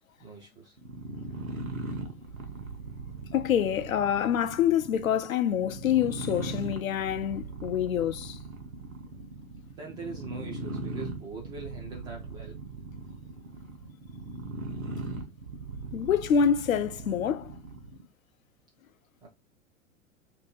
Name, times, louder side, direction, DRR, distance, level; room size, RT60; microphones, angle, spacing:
voice 1, 0.2-0.8 9.7-12.6 19.2-19.3, right 4 dB, 10° right, 0.3 m, -42 dB
sound 1, 0.8-18.1, right 3 dB, 75° right, 1.0 m, -39 dB
voice 2, 3.3-8.4 15.9-17.5, left 8 dB, 75° left, 0.5 m, -26 dB
2.8 x 2.7 x 4.0 m
figure-of-eight pair, 95°, 41 cm